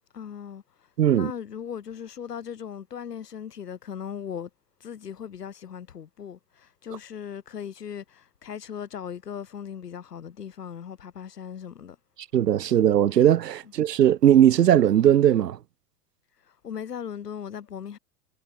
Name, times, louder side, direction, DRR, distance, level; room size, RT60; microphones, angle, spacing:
voice 1, 0.1-0.6 1.1-4.5 4.8-12.0 16.6-18.0, left 8 dB, 80° left, 4.6 m, -38 dB
voice 2, 1.0-1.3 12.3-15.6, right 10 dB, 85° right, 0.8 m, -19 dB
hypercardioid pair, 90°, 47 cm